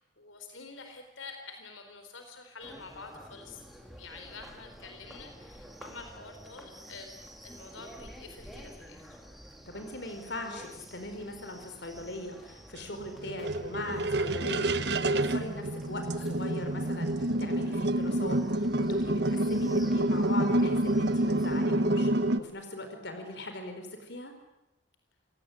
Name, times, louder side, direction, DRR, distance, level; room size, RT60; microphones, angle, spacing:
voice 1, 0.0-3.6 3.9-7.1 7.4-9.2, left 4 dB, 90° left, 6 dB, 4.1 m, -47 dB
sound 1, 2.6-21.7, equal, ahead, 3.1 m, -51 dB
voice 2, 9.7-24.3, left 1 dB, 60° left, 6 dB, 4.8 m, -40 dB
sound 2, 12.8-22.4, right 1 dB, 55° right, 1.2 m, -28 dB
27.0 x 18.0 x 9.9 m, 0.89 s
head